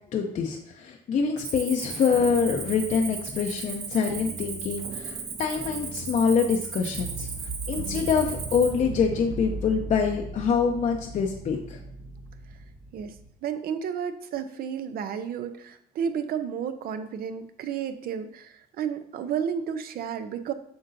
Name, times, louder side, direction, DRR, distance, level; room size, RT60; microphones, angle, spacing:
voice 1, 0.1-7.3 7.7-11.8, left 6 dB, 45° left, 2 dB, 0.7 m, -25 dB
Cricket, 1.4-8.8, right 5 dB, 80° right, 1.5 m, -36 dB
sound 1, 2.0-13.3, right 3 dB, 25° right, 0.7 m, -39 dB
voice 2, 13.4-20.5, right 8 dB, 65° right, 10 dB, 0.6 m, -32 dB
7.8 x 5.3 x 2.7 m, 0.75 s
cardioid pair, 110°, 17 cm